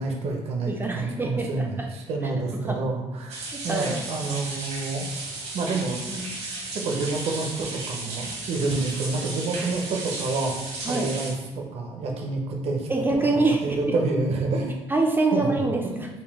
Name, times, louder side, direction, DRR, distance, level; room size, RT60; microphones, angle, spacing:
voice 1, 0.0-5.1 5.5-6.0 6.8-10.5 10.8-12.9 13.5-14.7 15.3-16.0, right 3 dB, 65° right, 1 dB, 0.6 m, -28 dB
voice 2, 0.7-1.9 2.5-2.8 3.5-4.1 6.1-6.4 10.9-11.1 12.9-14.0 14.9-16.1, right 2 dB, 20° right, 1 dB, 0.4 m, -26 dB
sound 1, 3.3-11.3, right 2 dB, 80° right, 1.0 m, -34 dB
3.9 x 2.2 x 3.4 m, 1.0 s
cardioid pair, 105°, 11 cm